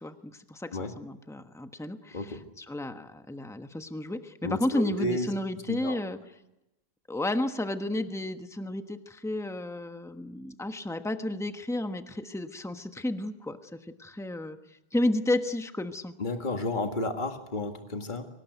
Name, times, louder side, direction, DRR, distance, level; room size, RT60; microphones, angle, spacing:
voice 1, 0.0-2.2 2.6-6.2 7.1-14.6 14.9-16.1, left 1 dB, 5° left, 7 dB, 1.2 m, -32 dB
voice 2, 2.1-2.4 4.4-5.3 5.7-6.0 16.2-18.3, left 2 dB, 50° left, 5 dB, 2.1 m, -32 dB
24.5 x 18.5 x 9.3 m, 0.92 s
omnidirectional pair, 1.1 m